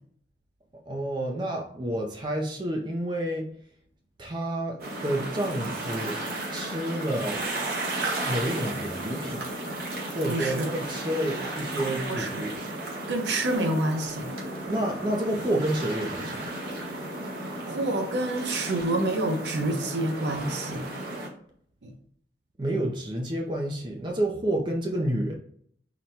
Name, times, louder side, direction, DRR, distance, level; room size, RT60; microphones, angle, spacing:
voice 1, 0.9-3.5 4.2-6.2 6.5-7.4 8.3-9.5 10.1-12.5 14.7-16.5 22.6-25.3, right 1 dB, 25° right, 1 dB, 0.4 m, -29 dB
sound 1, 4.8-21.3, right 2 dB, 55° right, 1.0 m, -34 dB
voice 2, 10.2-10.7 12.1-12.4 13.1-14.3 17.4-20.9 21.8-21.9, right 2 dB, 85° right, 4 dB, 0.7 m, -28 dB
4.0 x 2.2 x 4.3 m, 0.62 s
head